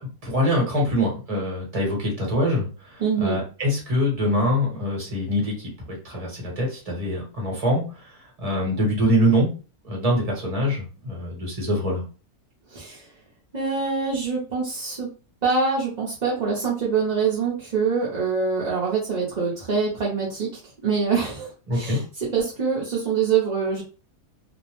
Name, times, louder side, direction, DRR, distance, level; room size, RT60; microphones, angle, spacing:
voice 1, 0.0-7.8 8.4-9.5 9.8-12.0 21.7-22.0, equal, 25° right, -2 dB, 1.0 m, -24 dB
voice 2, 3.0-3.4 12.7-13.0 13.5-15.1 15.4-20.5 20.8-23.8, right 5 dB, 45° right, -5 dB, 0.6 m, -24 dB
2.7 x 2.0 x 2.9 m, 0.34 s
omnidirectional pair, 1.6 m